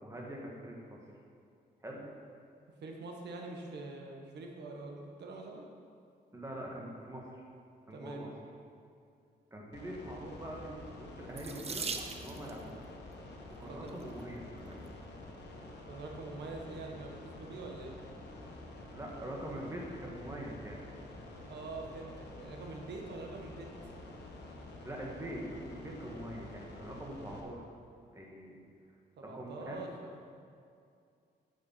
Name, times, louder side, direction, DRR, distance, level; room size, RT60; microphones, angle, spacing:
voice 1, 0.0-1.0 1.8-2.0 6.3-7.4 7.9-8.3 9.5-11.9 12.1-12.8 13.6-14.8 18.9-20.8 24.9-27.6 28.1-28.6 29.2-29.8, right 1 dB, 15° right, -2 dB, 1.8 m, -43 dB
voice 2, 2.8-5.7 7.9-8.2 13.7-14.0 15.8-18.0 21.5-23.7 29.2-30.1, right 3 dB, 85° right, 1 dB, 1.4 m, -44 dB
sound 1, 9.7-27.4, left 2 dB, 85° left, 1.6 m, -49 dB
Water tap faucet / Sink (filling or washing), 11.3-12.6 13.6-14.0 14.7-14.8 15.2-15.3, right 5 dB, 35° right, 0.7 m, -40 dB
9.6 x 7.2 x 5.8 m, 2.4 s
cardioid pair, 125°, 17 cm